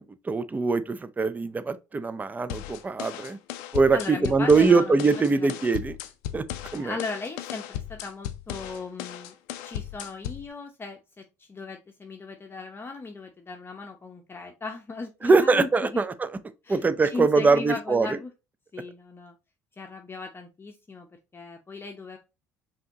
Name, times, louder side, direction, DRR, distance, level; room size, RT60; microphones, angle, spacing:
voice 1, 0.3-3.4 3.7-5.9 6.3-6.5 6.7-7.0 15.2-16.1 16.7-18.2, right 4 dB, 20° right, 0.4 m, -22 dB
sound 1, 2.5-10.5, left 12 dB, 70° left, 0.4 m, -37 dB
voice 2, 3.9-5.6 6.8-9.3 9.6-16.0 16.6-16.8 17.1-18.3 18.7-19.3 19.8-21.1 21.3-22.2, left 3 dB, 25° left, 0.7 m, -37 dB
5.1 x 2.8 x 2.7 m
hypercardioid pair, 60°, 9 cm